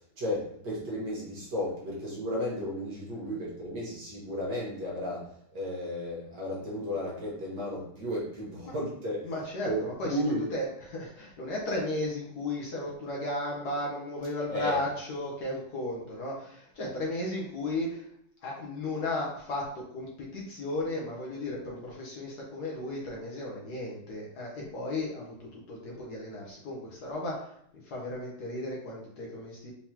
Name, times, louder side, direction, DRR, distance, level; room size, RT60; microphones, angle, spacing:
voice 1, 0.2-5.2 5.5-9.3 9.7-10.5 14.5-14.8, equal, 55° right, -5 dB, 1.9 m, -33 dB
voice 2, 9.2-18.1 18.4-27.5 27.8-29.7, left 1 dB, 60° left, -3 dB, 1.3 m, -35 dB
4.5 x 3.7 x 2.9 m, 0.67 s
omnidirectional pair, 2.2 m